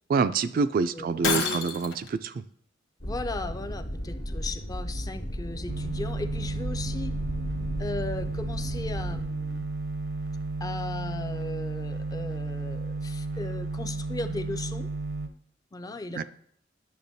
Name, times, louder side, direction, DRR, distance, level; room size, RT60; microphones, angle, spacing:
voice 1, 0.1-2.4 16.2-16.3, right 5 dB, 50° right, 12 dB, 0.3 m, -26 dB
Shatter, 1.2-2.1, left 6 dB, 90° left, 0.9 m, -28 dB
sound 1, 3.0-9.2, equal, 55° left, 1.2 m, -35 dB
voice 2, 3.0-7.1 7.8-9.7 10.6-14.9 15.7-16.2, left 2 dB, 20° left, 8 dB, 0.4 m, -37 dB
sound 2, 5.7-15.3, right 3 dB, 75° right, 0.7 m, -33 dB
10.5 x 6.7 x 2.7 m, 0.65 s
head